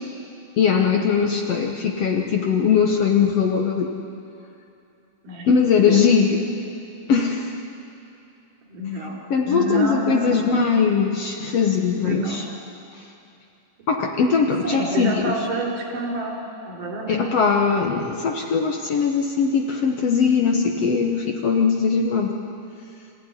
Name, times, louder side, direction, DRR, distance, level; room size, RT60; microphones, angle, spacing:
voice 1, 0.6-3.9 5.5-6.4 7.1-7.6 9.3-12.4 12.9-13.0 13.9-15.4 17.1-22.4, left 6 dB, 60° left, 2 dB, 1.9 m, -20 dB
voice 2, 8.7-9.2 9.4-10.6 12.0-12.4 14.6-17.3, right 1 dB, 70° right, -2 dB, 5.6 m, -28 dB
25.5 x 15.5 x 9.8 m, 2.7 s
omnidirectional pair, 3.9 m